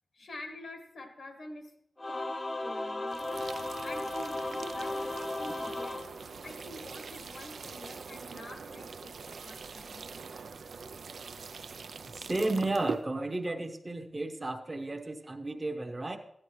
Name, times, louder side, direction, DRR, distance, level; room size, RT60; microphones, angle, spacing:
voice 1, 0.1-1.7 2.1-6.0 6.4-10.1, left 1 dB, 80° left, 4 dB, 1.5 m, -47 dB
Singing / Musical instrument, 2.0-6.8, left 2 dB, 25° left, 0.7 m, -36 dB
sound 1, 3.1-13.0, right 5 dB, 90° right, 0.4 m, -43 dB
voice 2, 12.1-16.2, right 2 dB, 30° right, 4 dB, 0.8 m, -33 dB
15.0 x 9.9 x 3.1 m, 0.74 s
wide cardioid pair, 110°, 0 cm